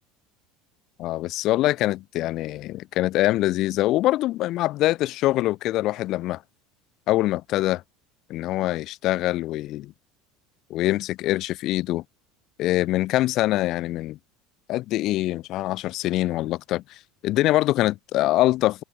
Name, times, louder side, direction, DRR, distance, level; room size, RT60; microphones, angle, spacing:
voice 1, 1.0-6.4 7.1-7.8 8.3-9.9 10.7-12.0 12.6-14.2 14.7-18.8, left 16 dB, 55° left, 1.1 m, -24 dB
supercardioid pair, 120°, 0 cm